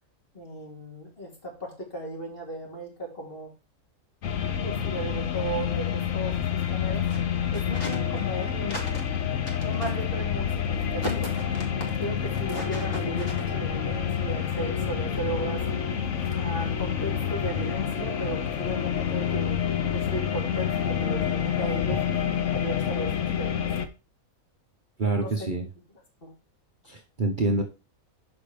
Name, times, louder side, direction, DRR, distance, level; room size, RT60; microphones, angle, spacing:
voice 1, 0.3-3.5 4.6-6.4 6.7-7.2 7.5-9.0 9.6-15.6 16.4-19.6 19.9-22.0 22.5-23.6 25.2-25.5 26.2-26.3, right 1 dB, 40° left, -1 dB, 2.8 m, -35 dB
sound 1, 4.2-23.9, left 8 dB, 60° left, 1.1 m, -28 dB
voice 2, 25.0-25.7 26.9-27.6, right 3 dB, 40° right, 3 dB, 0.9 m, -26 dB
6.6 x 5.3 x 4.9 m, 0.30 s
omnidirectional pair, 1.5 m